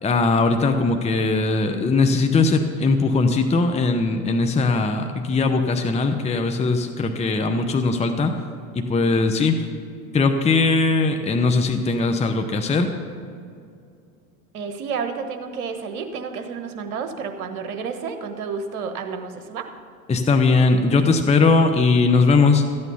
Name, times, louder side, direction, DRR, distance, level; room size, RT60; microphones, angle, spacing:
voice 1, 0.0-8.3 8.7-9.5 10.1-12.9 20.1-22.6, left 3 dB, 15° left, 6 dB, 0.8 m, -19 dB
voice 2, 14.5-19.7, right 5 dB, 80° right, 7 dB, 1.4 m, -30 dB
14.0 x 8.7 x 5.6 m, 2.4 s
hypercardioid pair, 85°, 44 cm